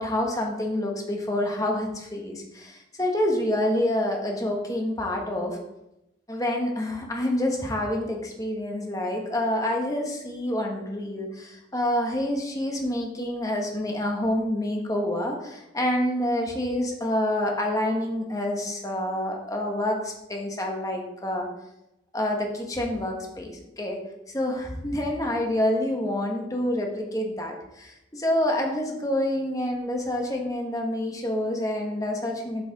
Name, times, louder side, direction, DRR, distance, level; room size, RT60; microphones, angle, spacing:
voice 1, 0.0-5.6 6.3-21.5 22.1-24.0 24.3-32.6, left 1 dB, 20° left, 1 dB, 1.2 m, -27 dB
8.1 x 5.1 x 3.9 m, 0.88 s
head